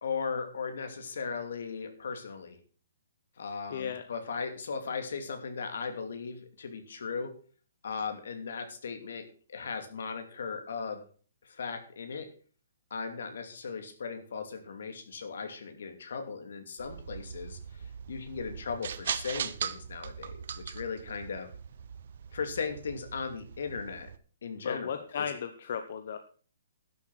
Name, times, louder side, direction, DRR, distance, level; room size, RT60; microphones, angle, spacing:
voice 1, 0.0-2.6 3.4-7.3 7.8-11.0 11.4-12.3 12.9-21.5 22.3-24.1 24.4-25.3, left 5 dB, 65° left, 6 dB, 2.8 m, -37 dB
voice 2, 3.4-4.0 24.6-26.2, left 7 dB, 45° left, 8 dB, 1.0 m, -36 dB
sound 1, 16.8-24.2, right 8 dB, 50° right, 0.8 m, -40 dB
11.5 x 7.6 x 6.2 m, 0.42 s
hypercardioid pair, 175°, 0 cm